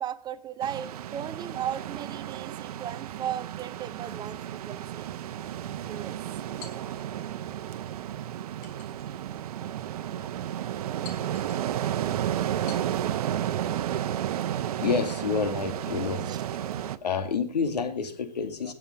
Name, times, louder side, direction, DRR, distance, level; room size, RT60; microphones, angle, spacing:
voice 1, 0.0-5.1 5.9-6.2 16.3-16.4, right 10 dB, 20° right, 14 dB, 0.6 m, -36 dB
sound 1, 0.6-17.0, right 11 dB, 65° right, 0.9 m, -32 dB
sound 2, 6.6-7.4 8.6-9.4 10.0-10.1 11.0-11.7 12.7-13.2, left 7 dB, 40° left, 4.1 m, -49 dB
voice 2, 14.8-16.3 16.6-18.7, left 5 dB, 80° left, 8 dB, 2.3 m, -29 dB
17.5 x 7.3 x 5.1 m, 0.40 s
hypercardioid pair, 125°, 20 cm